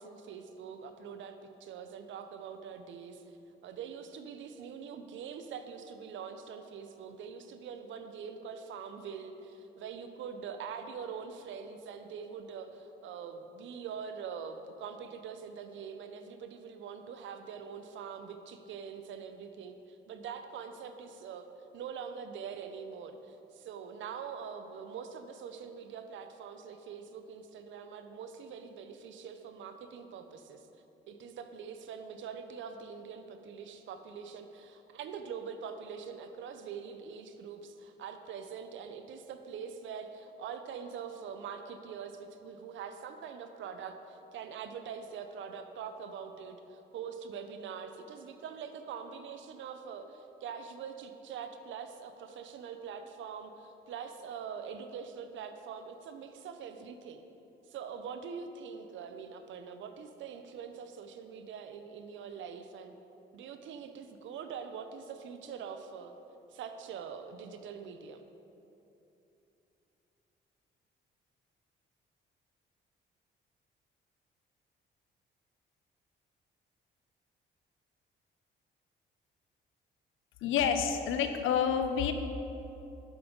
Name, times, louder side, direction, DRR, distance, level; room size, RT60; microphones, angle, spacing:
voice 1, 0.0-21.5 21.7-30.7 31.1-57.2 57.7-62.9 63.3-66.1 66.5-68.2, right 6 dB, 75° right, 8 dB, 0.6 m, -44 dB
voice 2, 80.4-82.1, left 7 dB, 85° left, 8 dB, 0.7 m, -28 dB
12.0 x 5.3 x 3.9 m, 2.9 s
cardioid pair, 90°, 20 cm